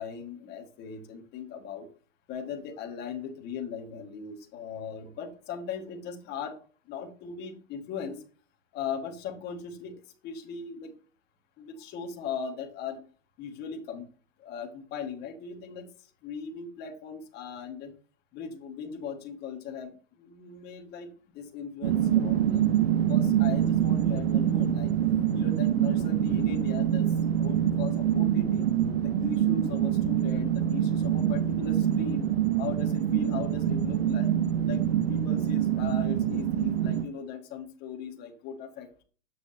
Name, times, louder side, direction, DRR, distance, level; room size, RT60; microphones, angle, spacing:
voice 1, 0.0-1.9 2.3-6.6 6.9-8.2 8.7-10.0 10.2-10.9 11.6-13.0 13.4-14.1 14.4-15.9 16.2-17.9 18.3-21.1 21.3-22.7 22.9-24.9 25.3-27.1 27.4-28.7 29.0-32.3 32.6-34.3 34.7-39.0, left 6 dB, 25° left, 2 dB, 1.7 m, -38 dB
sound 1, 21.8-37.0, right 10 dB, 55° right, 1.0 m, -25 dB
7.8 x 6.0 x 4.2 m, 0.38 s
hypercardioid pair, 150°, 38 cm